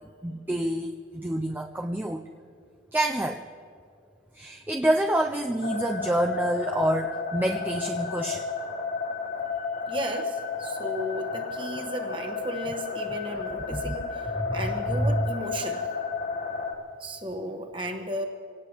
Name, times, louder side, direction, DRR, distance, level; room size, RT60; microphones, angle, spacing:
voice 1, 0.2-2.2 2.9-3.5 4.3-8.4 13.7-13.9 14.4-14.6 14.9-15.3, right 1 dB, 10° right, 3 dB, 0.4 m, -27 dB
sound 1, 5.6-16.8, left 4 dB, 65° left, 2.7 m, -32 dB
voice 2, 9.9-15.8 17.0-18.2, equal, 25° right, 4 dB, 1.3 m, -34 dB
26.5 x 18.0 x 3.0 m, 2.4 s
head